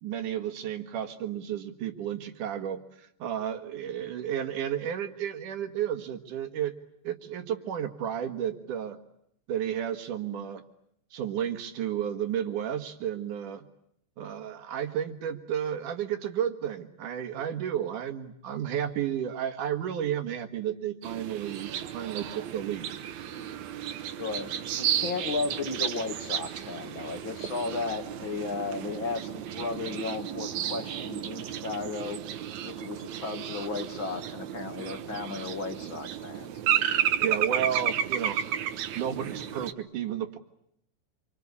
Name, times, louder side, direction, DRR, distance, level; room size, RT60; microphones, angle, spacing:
voice 1, 0.0-6.7 7.0-9.0 9.5-10.6 11.1-13.7 14.2-22.9 37.2-38.4 38.9-40.4, right 9 dB, 90° right, 7 dB, 3.3 m, -32 dB
sound 1, 21.0-39.7, right 10 dB, 70° right, 2.5 m, -33 dB
voice 2, 24.2-32.2 32.6-36.5, left 4 dB, 45° left, 6 dB, 2.4 m, -35 dB
27.0 x 25.0 x 8.5 m, 0.73 s
omnidirectional pair, 3.5 m